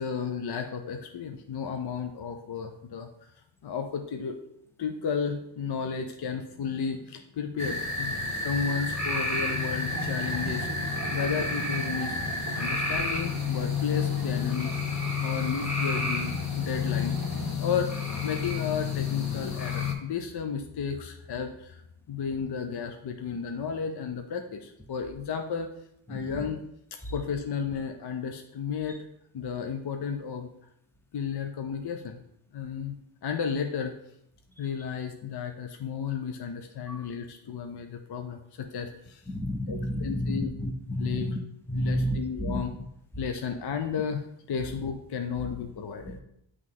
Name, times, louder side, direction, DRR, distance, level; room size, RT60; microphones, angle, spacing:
voice 1, 0.0-3.1 3.6-4.4 4.8-12.2 12.6-17.2 17.6-21.8 22.1-25.7 26.1-26.6 26.9-29.0 29.3-30.5 31.1-32.2 32.5-33.0 33.2-33.9 34.6-39.2 39.7-40.5 41.0-41.3 41.7-42.7 43.2-44.2 44.5-46.2, left 6 dB, 55° left, 5 dB, 0.6 m, -33 dB
sound 1, 7.6-19.9, left 4 dB, 35° left, 1.1 m, -30 dB
sound 2, 9.9-17.5, right 7 dB, 50° right, 0.6 m, -41 dB
voice 2, 39.3-41.4 41.7-42.6 46.0-46.2, left 1 dB, 5° left, 5 dB, 0.7 m, -31 dB
8.0 x 3.2 x 3.7 m, 0.76 s
cardioid pair, 70°, 48 cm